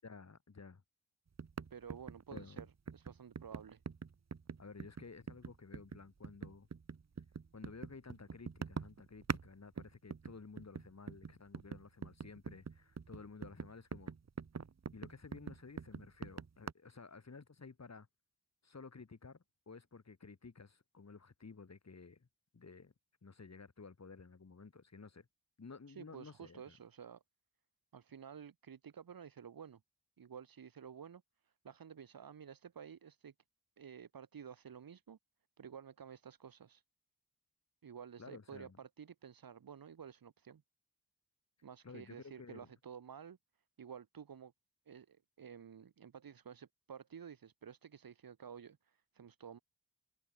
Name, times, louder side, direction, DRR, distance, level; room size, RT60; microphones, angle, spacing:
voice 1, 0.0-0.8 2.3-2.6 4.6-6.7 7.5-14.1 14.9-18.1 18.6-22.3 22.5-22.9 23.2-25.3 25.6-26.8 38.2-38.8 41.8-42.7, left 4 dB, 50° left, 7.7 m, -53 dB
sound 1, 1.4-9.5 9.8-16.7, right 5 dB, 50° right, 2.0 m, -44 dB
voice 2, 1.7-3.8 25.9-27.2 27.9-29.8 30.2-33.3 33.8-35.2 35.6-36.8 37.8-40.6 41.6-43.4 43.8-44.5 44.9-49.6, right 7 dB, 75° right, 4.2 m, -52 dB
cardioid pair, 55°, 35 cm